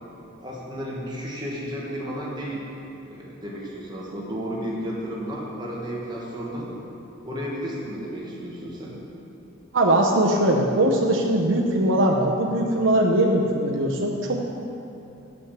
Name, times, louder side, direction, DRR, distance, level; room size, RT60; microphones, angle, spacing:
voice 1, 0.4-2.6 3.0-6.7 7.2-9.0, equal, 20° right, -4 dB, 1.3 m, -33 dB
voice 2, 9.7-14.4, right 1 dB, 60° right, -1 dB, 0.7 m, -21 dB
7.1 x 6.2 x 7.3 m, 2.9 s
head